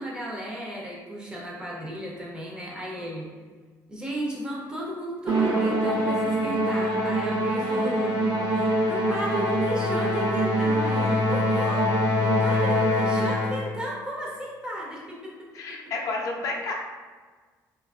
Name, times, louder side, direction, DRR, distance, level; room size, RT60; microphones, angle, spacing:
voice 1, 0.0-3.3 3.9-8.2 8.5-11.9 12.2-15.3, equal, 10° right, -4 dB, 0.4 m, -34 dB
Musical instrument, 5.3-13.8, equal, 65° right, 0.7 m, -24 dB
voice 2, 15.5-16.7, left 3 dB, 50° left, -1 dB, 0.4 m, -31 dB
2.8 x 2.3 x 2.3 m, 1.5 s
cardioid pair, 170°, 7 cm